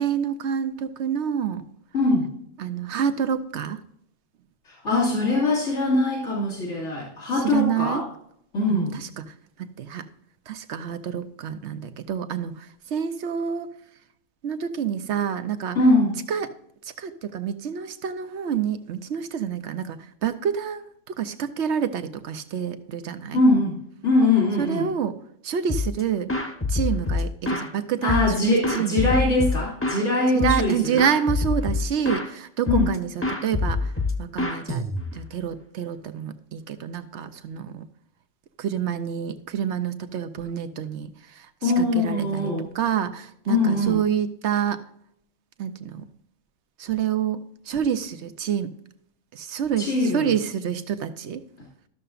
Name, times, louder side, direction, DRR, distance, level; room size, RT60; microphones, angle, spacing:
voice 1, 0.0-1.6 2.6-3.8 7.4-8.0 8.7-9.2 9.6-10.1 10.5-13.7 14.4-15.8 16.3-16.5 17.0-23.4 24.6-25.2 25.4-26.3 26.7-29.1 30.3-33.9 34.2-37.8 38.6-44.8 45.6-46.1 46.8-47.4 47.7-48.7 49.3-51.4, right 8 dB, 75° right, 11 dB, 1.1 m, -28 dB
voice 2, 1.9-2.3 4.7-8.0 8.5-8.9 15.7-16.1 23.3-23.8 24.0-24.9 28.0-31.0 32.7-32.9 41.6-42.7 43.5-44.0 49.8-50.3, left 2 dB, 90° left, -7 dB, 2.7 m, -22 dB
sound 1, 25.7-26.0 26.3-27.7 28.1-30.1 30.4-30.7 31.0-32.3 32.7-33.0 33.2-35.3, left 3 dB, 15° left, 0.8 m, -26 dB
13.0 x 6.8 x 2.5 m, 0.71 s
omnidirectional pair, 1.2 m